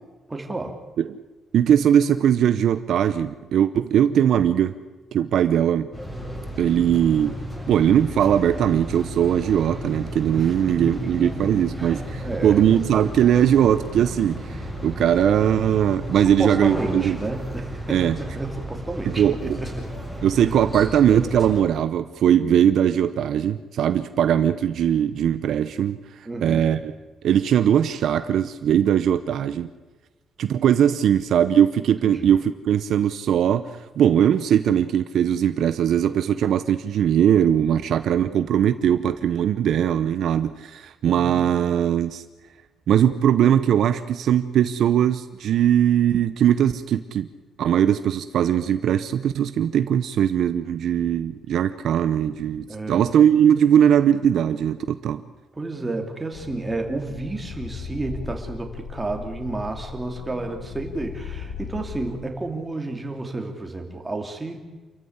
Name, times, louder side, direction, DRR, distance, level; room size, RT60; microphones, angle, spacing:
voice 1, 0.3-0.8 10.3-12.6 16.1-19.9 22.4-22.7 26.2-26.7 32.0-32.3 41.0-41.4 52.7-53.0 55.5-64.6, right 2 dB, 15° right, 3 dB, 3.0 m, -31 dB
voice 2, 1.5-4.7 5.1-5.9 6.6-7.4 7.7-17.2 17.9-18.2 19.2-19.6 20.2-26.0 26.4-26.9 27.2-29.7 30.4-33.7 34.0-42.2 42.9-47.3 47.6-55.2, right 9 dB, 65° right, 11 dB, 0.8 m, -20 dB
sound 1, 5.9-21.6, equal, 15° left, 7.5 m, -34 dB
sound 2, 56.3-62.2, left 6 dB, 75° left, 2.0 m, -37 dB
28.0 x 14.5 x 9.6 m, 1.2 s
cardioid pair, 155°, 0 cm